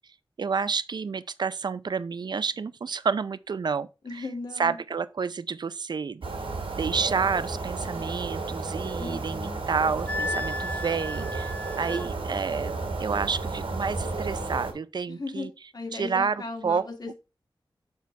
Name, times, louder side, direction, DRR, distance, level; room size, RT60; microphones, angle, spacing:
voice 1, 0.4-4.2 4.6-6.2 6.7-11.5 11.8-15.5 15.9-16.9, right 5 dB, 55° right, 0.5 m, -29 dB
voice 2, 4.0-4.8 9.0-9.6 15.1-15.5 15.7-17.1, left 3 dB, 50° left, 1.7 m, -36 dB
sound 1, 6.2-14.7, right 3 dB, 90° right, 2.1 m, -33 dB
Wind instrument woodwind instrument, 10.1-12.1, left 2 dB, 15° left, 0.7 m, -34 dB
6.8 x 4.5 x 4.6 m
wide cardioid pair, 115°, 9 cm